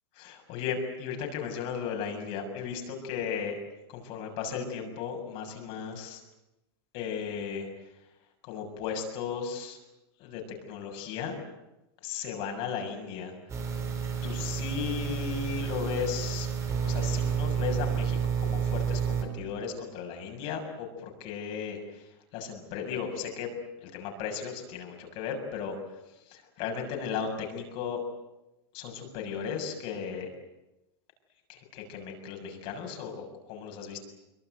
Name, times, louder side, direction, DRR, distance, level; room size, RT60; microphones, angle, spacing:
voice 1, 0.2-3.6 3.9-6.2 6.9-7.7 8.4-9.8 10.2-10.4 10.7-11.4 12.0-13.3 14.2-16.5 16.8-23.5 23.8-26.0 26.3-28.0 28.7-30.3 31.5-34.0, left 7 dB, 45° left, 3 dB, 6.9 m, -35 dB
sound 1, 13.5-19.2, right 7 dB, 20° right, 4.6 m, -30 dB
25.5 x 23.5 x 9.4 m, 0.95 s
supercardioid pair, 150°, 13 cm